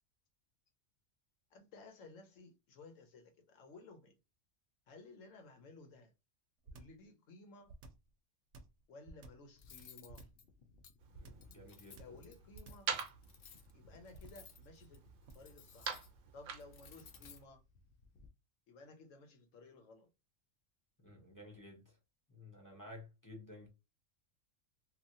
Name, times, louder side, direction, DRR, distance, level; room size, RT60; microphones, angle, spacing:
voice 1, 1.5-4.2 4.9-6.1 6.7-7.7 8.9-10.3 11.9-12.9 13.7-15.0 15.3-15.9 16.3-17.6 18.7-20.1, left 3 dB, 75° left, 1.1 m, -56 dB
sound 1, 6.6-7.0 7.7-8.1 8.5-9.5 10.1-10.5 11.1-11.5 12.0-12.3 12.5-12.9 14.1-14.5 15.3-15.5, right 3 dB, 70° right, 0.9 m, -54 dB
Cutlery silverware, 9.6-18.3, left 6 dB, 60° left, 0.6 m, -60 dB
sound 2, 11.0-17.4, right 7 dB, 90° right, 1.0 m, -47 dB
voice 2, 11.1-12.0 21.0-21.8 22.3-23.7, left 1 dB, 20° left, 0.6 m, -53 dB
2.9 x 2.4 x 2.6 m
omnidirectional pair, 1.3 m